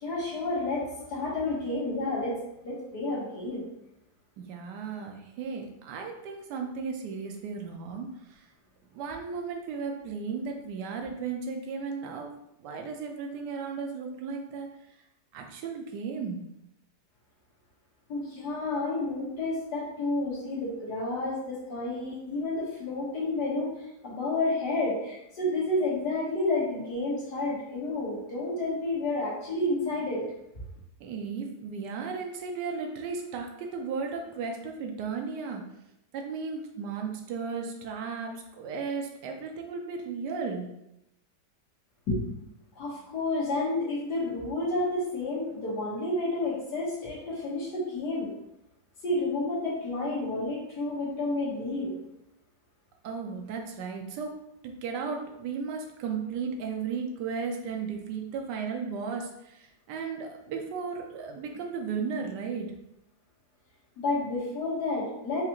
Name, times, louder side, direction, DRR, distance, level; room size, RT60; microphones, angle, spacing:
voice 1, 0.0-3.7 18.1-23.7 24.0-30.2 42.1-42.2 42.8-48.3 49.0-52.0 64.0-65.4, left 2 dB, 75° left, -7 dB, 1.9 m, -30 dB
voice 2, 4.4-8.4 8.9-14.7 15.3-16.4 31.0-35.6 36.1-40.7 53.0-54.4 54.6-62.7, right 5 dB, 85° right, 2 dB, 1.2 m, -35 dB
4.9 x 2.4 x 2.9 m, 0.84 s
omnidirectional pair, 1.8 m